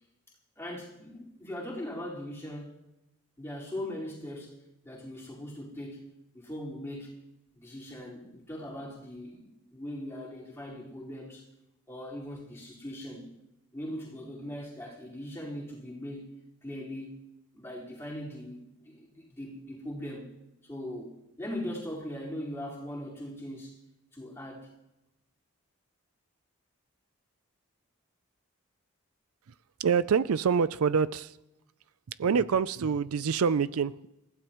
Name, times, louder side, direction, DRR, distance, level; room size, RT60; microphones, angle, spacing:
voice 1, 0.6-2.8 3.4-4.5 4.8-6.1 6.3-7.1 7.5-11.5 11.9-13.3 13.7-16.3 16.6-17.1 17.5-20.3 20.6-23.8 24.1-24.7, left 1 dB, 10° left, -6 dB, 4.4 m, -40 dB
voice 2, 29.8-31.4 32.2-34.1, right 6 dB, 75° right, 16 dB, 0.4 m, -26 dB
28.0 x 15.5 x 3.1 m, 0.92 s
head